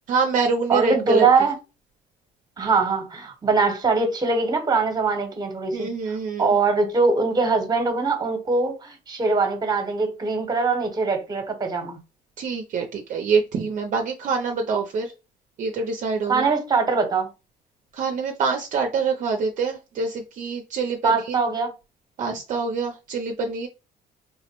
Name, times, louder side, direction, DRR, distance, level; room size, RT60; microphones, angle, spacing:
voice 1, 0.1-1.3 5.7-6.5 12.4-15.1 15.6-16.5 17.9-21.4 22.2-23.7, right 5 dB, 50° right, 0.5 m, -25 dB
voice 2, 0.7-1.5 2.6-5.9 6.4-12.0 16.3-17.3 21.0-21.7, right 4 dB, 25° right, 0.9 m, -22 dB
3.6 x 2.0 x 2.9 m
cardioid pair, 110°, 17 cm